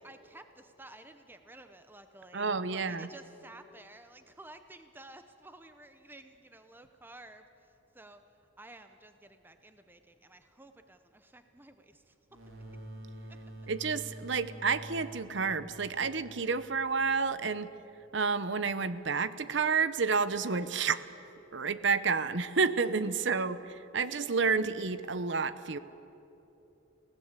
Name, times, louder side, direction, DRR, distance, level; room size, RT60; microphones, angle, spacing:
voice 1, 0.0-8.2 8.6-12.1 23.1-23.4, right 2 dB, 10° right, 8 dB, 0.7 m, -53 dB
voice 2, 2.3-3.1 13.7-17.7 18.1-21.0 21.5-23.6 23.9-25.8, right 5 dB, 60° right, 14 dB, 0.8 m, -30 dB
sound 1, 12.3-17.7, right 1 dB, 85° right, 3.2 m, -48 dB
25.5 x 17.0 x 8.3 m, 2.9 s
head